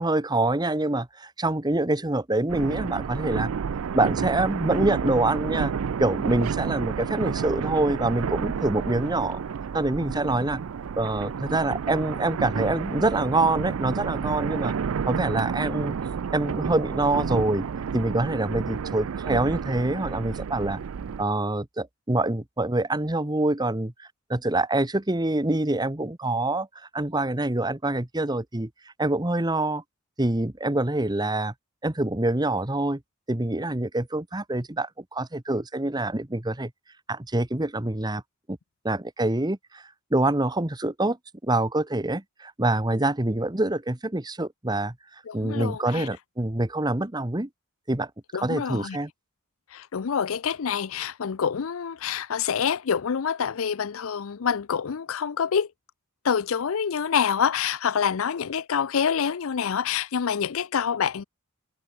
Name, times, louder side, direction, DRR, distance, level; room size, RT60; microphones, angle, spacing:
voice 1, 0.0-3.5 3.9-5.7 6.0-9.4 9.7-10.6 11.0-14.7 15.0-16.0 16.3-17.7 17.9-20.8 21.2-26.7 26.9-28.7 29.0-29.8 30.2-31.5 31.8-33.0 33.3-36.7 37.1-38.2 38.5-38.6 38.8-41.2 41.4-44.9 45.3-47.5 47.9-48.1 48.4-49.1, right 2 dB, 20° right, 1.2 m, -25 dB
sound 1, 2.5-21.2, right 6 dB, 75° right, 0.4 m, -30 dB
voice 2, 45.3-46.1 48.3-49.0 49.7-55.7 56.2-61.2, left 7 dB, 70° left, 0.5 m, -26 dB
head